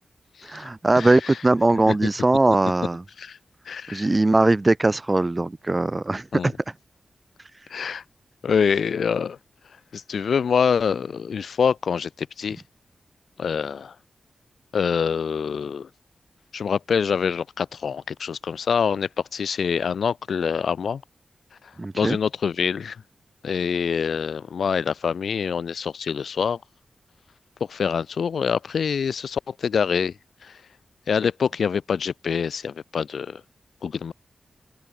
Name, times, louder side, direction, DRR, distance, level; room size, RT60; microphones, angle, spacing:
voice 1, 0.4-3.0 3.9-6.5 21.8-22.2, right 2 dB, 20° right, 2.3 m, -20 dB
voice 2, 3.7-4.1 6.3-6.5 7.7-8.0 8.4-9.4 9.9-12.1 12.4-12.6 13.4-13.9 14.7-15.9 16.5-21.0 21.9-23.0 23.4-26.6 27.7-30.1 31.1-33.4 33.8-34.1, left 6 dB, 85° left, 1.3 m, -25 dB
open air
wide cardioid pair, 170°, 0 cm